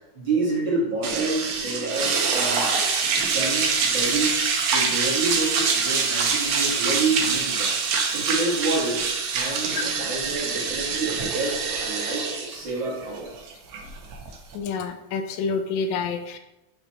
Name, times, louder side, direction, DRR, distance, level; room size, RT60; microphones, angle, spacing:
voice 1, 0.1-2.8 3.3-4.3 4.7-7.7 8.1-9.0 9.3-13.4, right 3 dB, 45° right, -5 dB, 2.1 m, -28 dB
sound 1, 1.0-14.6, right 5 dB, 85° right, 1.0 m, -25 dB
voice 2, 14.5-16.4, left 5 dB, 80° left, 7 dB, 1.8 m, -28 dB
5.8 x 5.5 x 4.2 m, 0.95 s
omnidirectional pair, 3.3 m